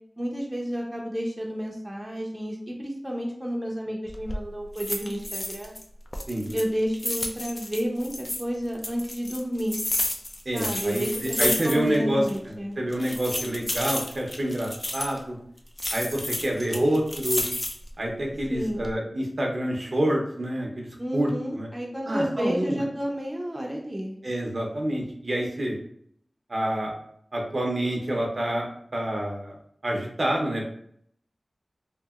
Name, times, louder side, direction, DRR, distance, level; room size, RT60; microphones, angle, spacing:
voice 1, 0.2-5.7 6.5-9.8 10.5-12.8 18.5-18.9 21.0-24.2, equal, 25° right, -1 dB, 0.6 m, -30 dB
sound 1, 4.1-4.4 4.8-5.8 6.1-8.4 8.8-12.0 12.3-12.4 12.9-15.2 15.8-17.9 18.4-18.9, left 1 dB, 30° left, 0.4 m, -31 dB
voice 2, 6.3-6.6 10.5-15.4 15.9-17.4 18.0-20.9 21.1-21.7 22.0-22.8 24.2-25.8 26.5-26.9 27.3-29.6 29.8-30.7, right 1 dB, 60° right, 0 dB, 0.6 m, -27 dB
2.8 x 2.5 x 2.4 m, 0.65 s
wide cardioid pair, 45°, 0 cm